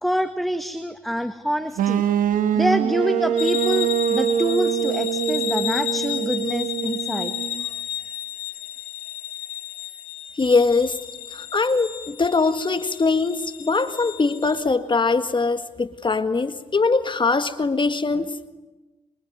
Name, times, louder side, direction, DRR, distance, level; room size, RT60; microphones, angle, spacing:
voice 1, 0.0-2.1 2.5-7.3, equal, ahead, 9 dB, 1.7 m, -26 dB
sound 1, 1.8-7.6, right 9 dB, 70° right, 1.5 m, -24 dB
sound 2, 3.4-14.6, left 13 dB, 85° left, 2.2 m, -33 dB
voice 2, 10.4-11.0 11.3-18.3, left 4 dB, 35° left, 10 dB, 1.7 m, -22 dB
26.0 x 24.5 x 9.5 m, 1.2 s
hypercardioid pair, 50°, 15 cm